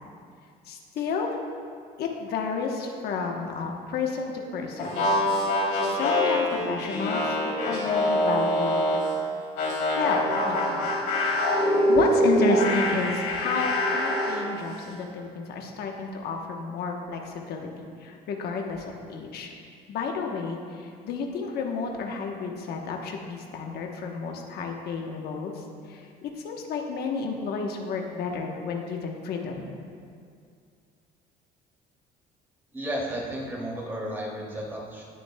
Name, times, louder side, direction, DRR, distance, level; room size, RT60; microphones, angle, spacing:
voice 1, 0.7-1.4 2.0-5.1 5.9-7.4 7.6-8.9 10.0-10.9 11.2-19.5 19.9-29.8, left 4 dB, 70° left, 2 dB, 1.0 m, -31 dB
sound 1, 4.8-9.1 9.6-14.4, left 1 dB, 90° left, 2.1 m, -24 dB
voice 2, 32.7-35.1, equal, 15° right, -4 dB, 2.4 m, -33 dB
18.5 x 6.6 x 2.2 m, 2.3 s
cardioid pair, 110°, 17 cm